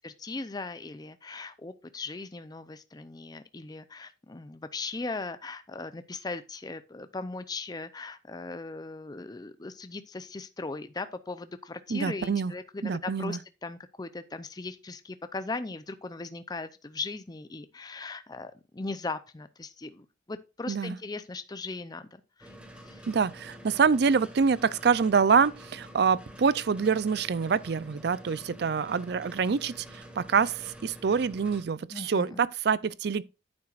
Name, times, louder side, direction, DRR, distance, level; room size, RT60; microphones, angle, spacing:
voice 1, 0.0-22.1 22.4-22.5 22.8-23.1 31.9-32.5, left 3 dB, 20° left, 0.5 m, -38 dB
voice 2, 11.9-12.5 12.8-13.4 20.7-21.0 23.1-33.2, right 5 dB, 60° right, 0.4 m, -26 dB
sound 1, 22.4-31.6, equal, 5° right, 1.5 m, -48 dB
9.9 x 8.7 x 2.5 m
head